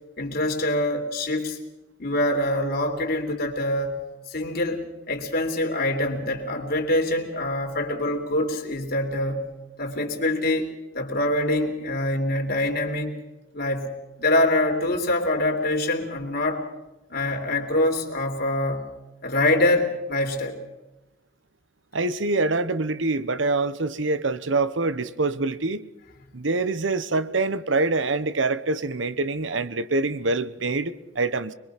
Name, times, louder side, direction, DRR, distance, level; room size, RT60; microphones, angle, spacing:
voice 1, 0.2-1.6 2.0-9.5 9.8-13.2 13.5-16.7 17.1-19.0 19.2-20.6, left 1 dB, 55° left, 3.1 m, -25 dB
voice 2, 21.9-25.9 26.3-31.5, right 3 dB, 70° right, 1.0 m, -25 dB
24.5 x 22.5 x 5.8 m
head